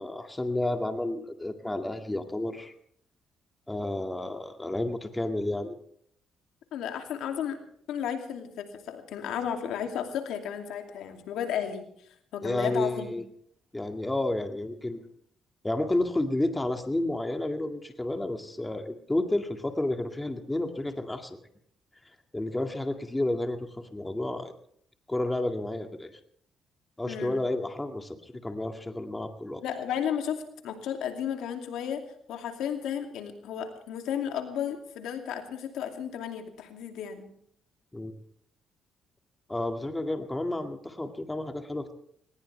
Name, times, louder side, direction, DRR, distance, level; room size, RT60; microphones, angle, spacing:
voice 1, 0.0-2.7 3.7-5.7 12.4-13.2 13.7-15.0 15.6-21.4 22.3-24.5 25.1-26.1 27.0-29.6 37.9-38.1 39.5-41.9, left 1 dB, 15° left, 5 dB, 2.1 m, -31 dB
voice 2, 6.7-7.6 7.9-11.9 12.3-13.1 27.1-27.4 29.6-37.3, left 8 dB, 85° left, 5 dB, 2.6 m, -33 dB
20.0 x 20.0 x 3.4 m, 0.67 s
cardioid pair, 90°, 0 cm